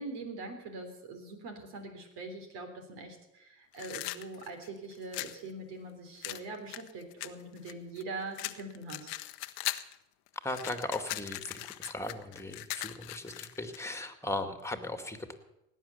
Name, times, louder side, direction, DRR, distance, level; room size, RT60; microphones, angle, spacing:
voice 1, 0.0-9.1, right 3 dB, 65° right, 5 dB, 3.6 m, -43 dB
sound 1, 3.7-5.4 6.2-8.0 8.4-10.0 10.3-13.8, left 19 dB, 65° left, 1.0 m, -39 dB
voice 2, 10.4-15.3, left 2 dB, 5° left, 8 dB, 2.1 m, -37 dB
18.0 x 9.5 x 7.1 m, 0.90 s
hypercardioid pair, 65°, 45 cm